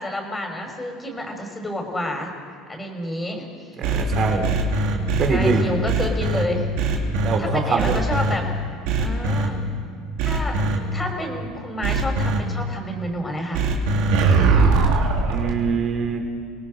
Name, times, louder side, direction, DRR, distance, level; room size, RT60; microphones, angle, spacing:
voice 1, 0.0-2.4 2.7-3.5 5.3-6.6 7.4-8.4 9.0-9.6 10.2-10.5 10.9-13.6, left 1 dB, 15° left, 3 dB, 5.0 m, -29 dB
voice 2, 3.8-4.5 5.2-5.7 7.2-8.0 15.3-16.2, right 5 dB, 45° right, 3 dB, 4.0 m, -24 dB
sound 1, 3.8-6.4 6.8-7.4 7.8-8.3 8.8-9.5 10.2-10.8 11.8-12.4 13.5-15.5, right 4 dB, 75° right, 3.1 m, -20 dB
29.0 x 18.5 x 5.3 m, 2.2 s
supercardioid pair, 95°, 0 cm